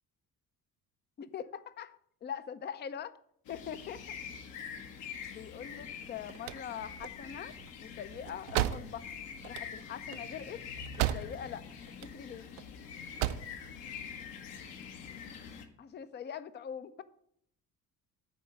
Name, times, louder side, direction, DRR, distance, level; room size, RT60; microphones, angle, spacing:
voice 1, 1.2-3.2 3.5-4.0 5.3-7.5 7.8-9.1 9.4-10.6 11.1-11.7 12.0-12.5 15.8-17.0, left 8 dB, 20° left, 15 dB, 0.5 m, -42 dB
sound 1, 3.4-15.6, left 7 dB, 65° left, 1.3 m, -45 dB
sound 2, 6.0-11.6 11.9-12.6 13.0-13.6, right 13 dB, 55° right, 0.6 m, -35 dB
10.5 x 4.6 x 6.4 m, 0.69 s
figure-of-eight pair, 50°, 48 cm